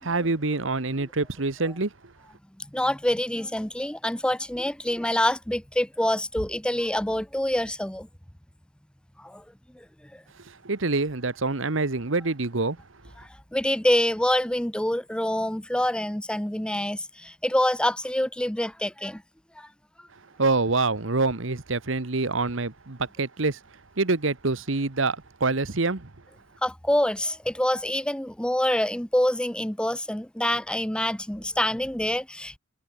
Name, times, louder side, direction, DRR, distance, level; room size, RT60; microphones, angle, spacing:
voice 1, 0.0-1.9 10.4-12.8 20.4-23.6 24.0-26.1, right 3 dB, 70° right, 1.3 m, -26 dB
voice 2, 2.6-8.1 9.2-9.4 9.7-9.8 10.1-10.2 13.2-19.2 19.6-19.7 26.6-32.6, left 1 dB, 5° left, 0.8 m, -26 dB
head